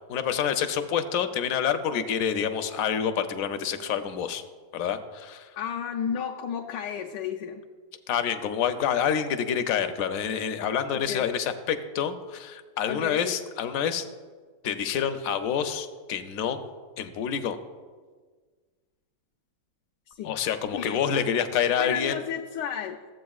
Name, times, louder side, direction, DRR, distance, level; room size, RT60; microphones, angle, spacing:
voice 1, 0.1-4.4 4.7-5.5 8.1-14.1 14.6-16.6 17.0-17.6 20.2-22.2, left 8 dB, 70° left, 9 dB, 0.9 m, -27 dB
voice 2, 5.6-7.6 10.9-11.3 12.9-13.3 20.1-20.4 20.7-21.0 21.8-23.0, left 8 dB, 85° left, 1 dB, 1.2 m, -33 dB
14.5 x 7.8 x 2.3 m, 1.5 s
omnidirectional pair, 1.8 m